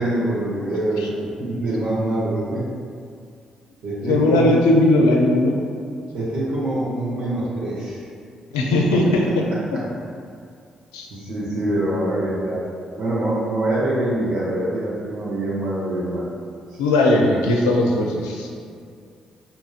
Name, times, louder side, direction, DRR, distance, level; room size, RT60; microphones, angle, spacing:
voice 1, 0.0-2.6 3.8-4.5 6.1-8.0 11.1-12.6 13.0-16.3, right 1 dB, 65° right, -8 dB, 1.1 m, -24 dB
voice 2, 4.1-5.6 8.5-9.4 9.7-9.8 10.9-11.1 16.8-18.5, left 1 dB, 90° left, -1 dB, 0.4 m, -18 dB
4.9 x 2.9 x 2.4 m, 2.3 s
hypercardioid pair, 45°, 3 cm